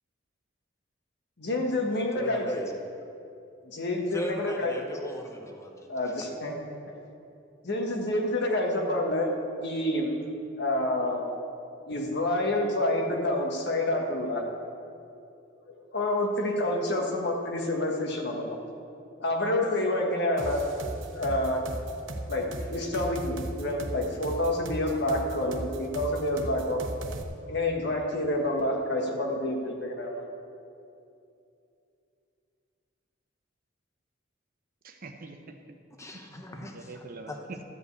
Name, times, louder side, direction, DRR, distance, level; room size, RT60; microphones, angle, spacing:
voice 1, 1.4-2.5 3.6-4.7 5.9-6.8 7.6-9.3 9.6-10.1 10.6-11.3 11.9-14.4 15.7-18.6 19.2-20.6 21.1-21.6 22.3-26.8 27.5-30.2, left 1 dB, 60° left, 1 dB, 1.5 m, -28 dB
voice 2, 2.1-2.7 4.1-5.9 36.0-37.4, left 1 dB, 15° left, 3 dB, 0.9 m, -38 dB
sound 1, 20.4-27.2, right 1 dB, 80° right, 1.0 m, -36 dB
voice 3, 34.8-35.5 36.1-37.6, right 3 dB, 50° right, 5 dB, 0.8 m, -44 dB
12.5 x 5.3 x 8.3 m, 2.6 s
head